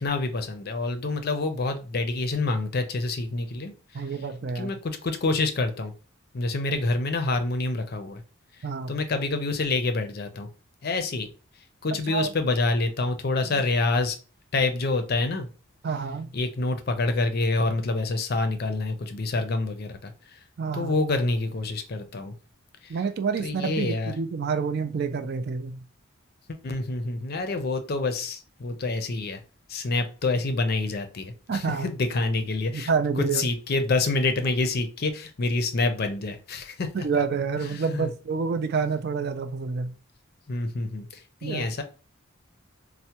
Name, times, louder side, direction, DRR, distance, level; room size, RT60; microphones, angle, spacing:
voice 1, 0.0-3.7 4.5-5.9 6.3-8.2 8.9-10.5 10.8-11.3 11.8-14.2 14.5-15.5 16.3-20.1 20.7-22.3 22.8-22.9 23.4-24.1 26.5-29.4 29.7-32.9 33.2-36.9 37.7-38.1 40.5-41.1 41.4-41.8, left 3 dB, 45° left, 7 dB, 0.5 m, -27 dB
voice 2, 3.9-4.7 8.6-9.0 12.1-12.3 13.5-13.6 15.8-16.3 20.6-21.0 22.9-25.8 31.5-31.9 32.7-33.4 37.0-39.9 41.4-41.7, right 5 dB, 50° right, 9 dB, 0.3 m, -28 dB
4.4 x 2.1 x 2.8 m, 0.35 s
head